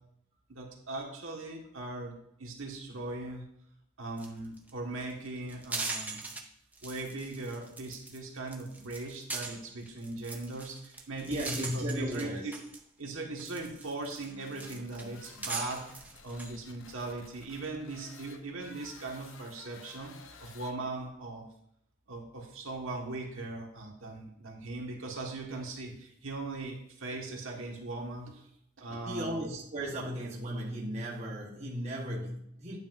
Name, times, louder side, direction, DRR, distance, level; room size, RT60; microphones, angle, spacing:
voice 1, 0.5-3.4 4.0-6.2 6.8-12.5 13.0-15.9 16.2-20.1 20.4-21.5 22.1-28.4 28.8-29.4, right 2 dB, 65° right, 0 dB, 1.6 m, -39 dB
sound 1, 4.2-4.3 4.6-4.7 5.0-6.4 6.7-8.2 8.5-12.8 13.2-16.5, right 3 dB, 5° right, 0.6 m, -41 dB
voice 2, 11.2-12.5 29.0-32.8, equal, 30° right, -4 dB, 1.2 m, -35 dB
sound 2, 14.1-21.1, left 5 dB, 60° left, 0.7 m, -54 dB
9.5 x 8.6 x 2.6 m, 0.73 s
head